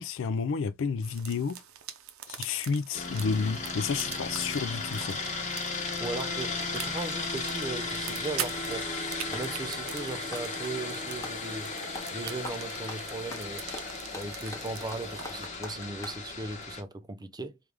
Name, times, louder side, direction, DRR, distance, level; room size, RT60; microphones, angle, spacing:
voice 1, 0.0-1.6 2.3-5.2, left 5 dB, 60° left, 0.4 m, -30 dB
sound 1, 1.0-15.5, right 10 dB, 75° right, 0.6 m, -44 dB
sound 2, 2.9-16.8, left 3 dB, 35° left, 1.2 m, -35 dB
voice 2, 6.0-8.9 9.3-11.7 12.1-13.6 14.1-17.6, right 3 dB, 20° right, 0.5 m, -37 dB
Clapping, 9.3-9.6 10.2-11.4 11.9-12.2 12.4-16.2, left 2 dB, 15° left, 0.9 m, -43 dB
4.6 x 2.5 x 3.4 m
head